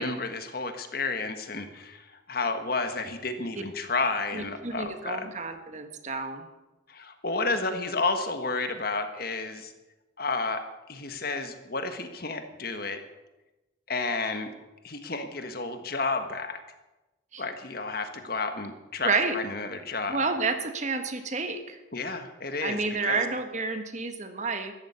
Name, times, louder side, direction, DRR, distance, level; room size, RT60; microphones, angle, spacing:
voice 1, 0.0-5.3 6.9-9.7 10.2-13.0 13.9-14.5 14.8-16.6 17.4-20.2 21.9-23.2, left 3 dB, 50° left, 8 dB, 1.6 m, -31 dB
voice 2, 4.3-6.5 17.3-17.4 19.0-19.4 20.1-21.8 22.6-24.7, right 4 dB, 35° right, 8 dB, 1.4 m, -30 dB
14.5 x 12.0 x 8.2 m, 1.1 s
head